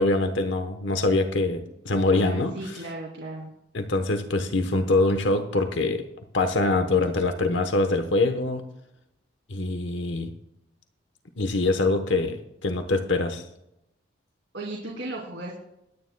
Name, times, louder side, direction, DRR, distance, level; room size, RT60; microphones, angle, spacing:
voice 1, 0.0-2.7 3.7-6.0 6.3-8.6 9.5-10.3 11.4-13.4, left 2 dB, 75° left, 6 dB, 1.1 m, -24 dB
voice 2, 2.1-3.5 14.5-15.6, right 2 dB, 75° right, -2 dB, 2.6 m, -36 dB
22.5 x 9.9 x 2.3 m, 0.82 s
head